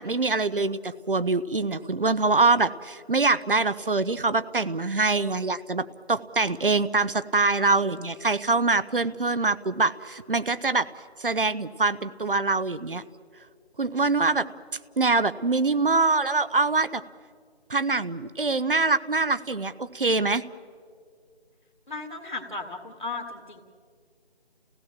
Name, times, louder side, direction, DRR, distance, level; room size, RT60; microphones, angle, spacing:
voice 1, 0.0-10.9 11.2-13.0 13.8-14.4 15.0-17.0 17.7-20.4, right 3 dB, 55° right, 14 dB, 0.8 m, -24 dB
voice 2, 21.9-23.6, left 3 dB, 45° left, 4 dB, 1.9 m, -36 dB
29.0 x 16.5 x 7.4 m, 2.1 s
figure-of-eight pair, 160°, 32 cm